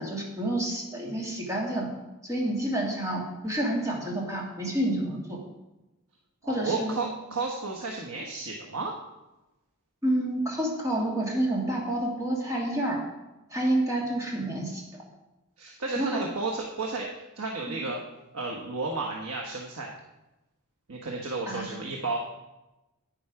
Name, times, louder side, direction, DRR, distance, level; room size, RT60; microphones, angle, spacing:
voice 1, 0.0-1.9 2.3-5.4 6.5-7.0 10.0-13.0 13.5-14.8 16.0-16.2 17.7-17.8 21.5-21.6, right 1 dB, 15° right, -2 dB, 2.4 m, -29 dB
voice 2, 6.4-8.9 15.6-17.1 17.4-18.0 18.3-19.9 20.9-22.2, right 3 dB, 80° right, 0 dB, 1.3 m, -32 dB
10.5 x 9.4 x 4.8 m, 1.0 s
head